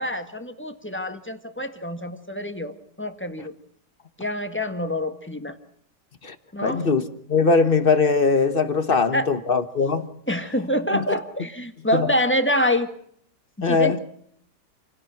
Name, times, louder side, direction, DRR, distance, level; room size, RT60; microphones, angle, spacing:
voice 1, 0.0-3.5 4.2-5.5 6.5-6.8 8.9-9.3 10.3-12.9 13.6-14.0, equal, 5° left, 1.6 m, -26 dB
voice 2, 6.6-7.0 7.3-10.1 10.9-11.0 11.9-12.1 13.6-14.0, left 4 dB, 35° left, 1.4 m, -20 dB
28.5 x 17.5 x 6.0 m
omnidirectional pair, 1.8 m